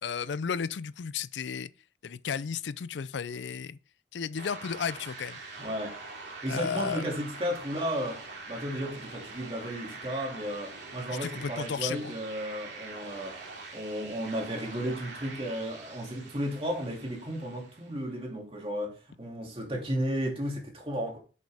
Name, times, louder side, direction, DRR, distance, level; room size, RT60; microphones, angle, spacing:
voice 1, 0.0-1.7 2.0-3.8 4.1-5.4 6.5-7.1 11.2-12.1, left 6 dB, 85° left, 0.4 m, -33 dB
sound 1, 4.3-18.0, right 3 dB, 85° right, 2.5 m, -44 dB
voice 2, 5.6-6.0 6.4-13.4 13.7-21.2, equal, 30° right, 2.4 m, -34 dB
8.3 x 6.6 x 3.4 m
head